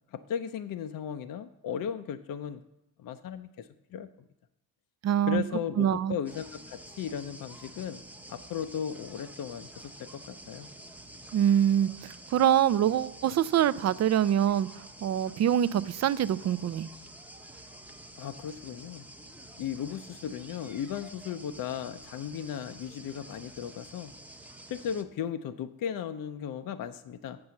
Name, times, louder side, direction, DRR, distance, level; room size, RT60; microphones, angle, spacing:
voice 1, 0.1-2.6 3.0-4.1 5.3-8.0 8.3-10.7 18.2-19.1 19.6-24.1 24.7-27.4, left 8 dB, 50° left, 0.6 m, -36 dB
voice 2, 5.0-5.4 5.8-6.1 11.3-16.9, right 10 dB, 40° right, 0.4 m, -25 dB
sound 1, 6.3-25.0, right 1 dB, 5° right, 0.9 m, -49 dB
7.8 x 5.3 x 7.0 m
supercardioid pair, 70°, 43 cm